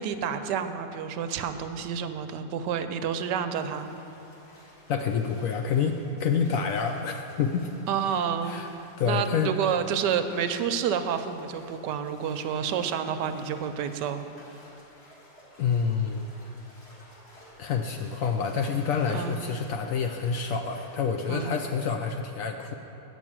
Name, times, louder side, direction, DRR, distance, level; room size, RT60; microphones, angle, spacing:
voice 1, 0.0-3.9 7.9-8.6 9.1-14.2 19.1-19.4 21.3-21.6, right 7 dB, 85° right, 9 dB, 1.2 m, -29 dB
sound 1, 3.5-22.0, equal, 40° left, 1.9 m, -54 dB
voice 2, 4.9-7.7 8.4-8.7 9.0-9.5 15.6-16.2 17.6-22.7, left 6 dB, 70° left, 4 dB, 0.8 m, -28 dB
8.7 x 6.2 x 7.3 m, 3.0 s
omnidirectional pair, 1.8 m